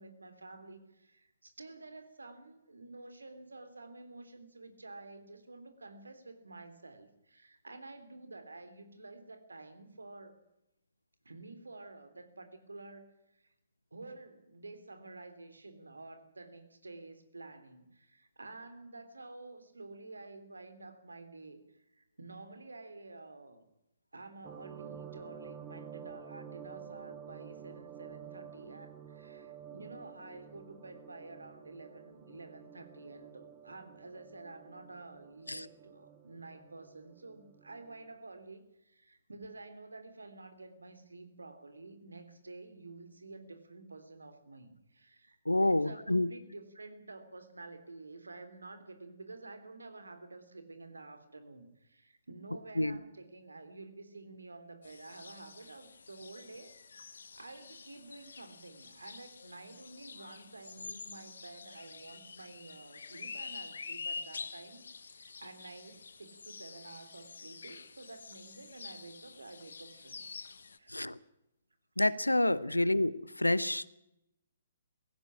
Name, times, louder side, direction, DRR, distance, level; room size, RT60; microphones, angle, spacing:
voice 1, 0.0-10.4 11.2-13.5 13.9-23.6 24.1-70.4 70.8-70.9 72.7-72.8, right 3 dB, 75° right, 9 dB, 3.2 m, -50 dB
sound 1, 24.4-38.2, right 8 dB, 20° right, 2.5 m, -51 dB
voice 2, 45.5-46.3 52.8-53.0 70.9-71.2 72.0-73.9, left 1 dB, 90° left, 17 dB, 0.9 m, -28 dB
sound 2, 54.8-70.8, left 4 dB, 65° left, 1.3 m, -47 dB
17.5 x 15.5 x 9.9 m, 0.88 s
figure-of-eight pair, 130°, 0 cm